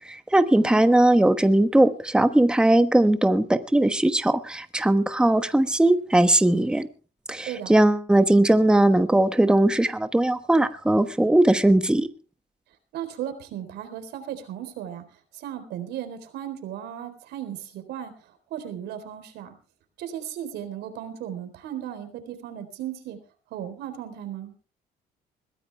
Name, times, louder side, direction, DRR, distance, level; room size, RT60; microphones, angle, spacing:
voice 1, 0.1-6.9 7.3-12.1, right 1 dB, 5° right, 10 dB, 1.1 m, -19 dB
voice 2, 12.9-15.0 15.3-18.1 18.5-19.5 20.0-23.2 23.5-24.5, right 10 dB, 80° right, 9 dB, 4.0 m, -36 dB
21.5 x 15.0 x 3.4 m, 0.36 s
cardioid pair, 110°, 17 cm